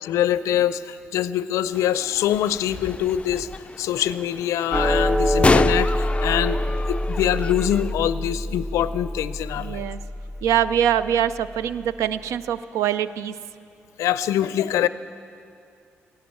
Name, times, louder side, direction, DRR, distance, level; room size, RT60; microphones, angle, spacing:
voice 1, 0.0-3.5 3.8-6.6 6.9-9.8 14.0-14.9, left 11 dB, 85° left, 15 dB, 0.4 m, -24 dB
sound 1, 1.7-7.9, left 3 dB, 20° left, 0.3 m, -28 dB
sound 2, 4.7-11.2, equal, 15° right, 1.7 m, -26 dB
voice 2, 9.6-10.0 10.4-13.4, right 10 dB, 85° right, 14 dB, 0.4 m, -23 dB
15.5 x 11.0 x 8.3 m, 2.5 s
supercardioid pair, 55°, 5 cm